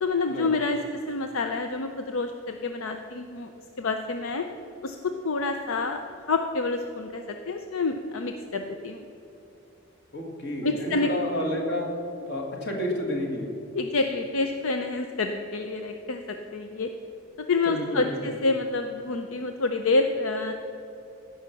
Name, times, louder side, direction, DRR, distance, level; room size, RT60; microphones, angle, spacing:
voice 1, 0.0-3.5 3.8-4.5 4.8-6.0 6.3-9.1 10.6-11.1 13.7-16.9 17.4-20.5, left 3 dB, 75° left, 6 dB, 0.6 m, -28 dB
voice 2, 10.1-11.9 12.2-13.5 17.7-18.3, left 1 dB, 50° left, 0 dB, 1.9 m, -30 dB
16.0 x 5.7 x 5.8 m, 2.8 s
head